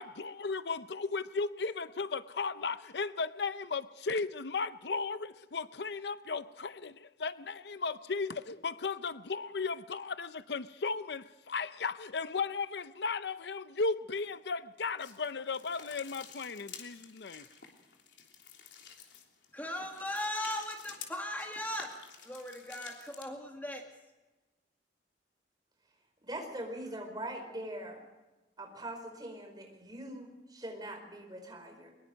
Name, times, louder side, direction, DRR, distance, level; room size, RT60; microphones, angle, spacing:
voice 1, 0.0-17.5, left 4 dB, 70° left, 13 dB, 0.7 m, -35 dB
sound 1, 15.0-23.3, left 7 dB, 85° left, 3.2 m, -51 dB
voice 2, 19.5-22.0 22.2-23.9, left 1 dB, 10° left, 2 dB, 1.9 m, -38 dB
voice 3, 26.2-28.0 28.6-31.9, right 1 dB, 25° right, 3 dB, 4.7 m, -42 dB
23.0 x 21.5 x 5.3 m, 1.1 s
head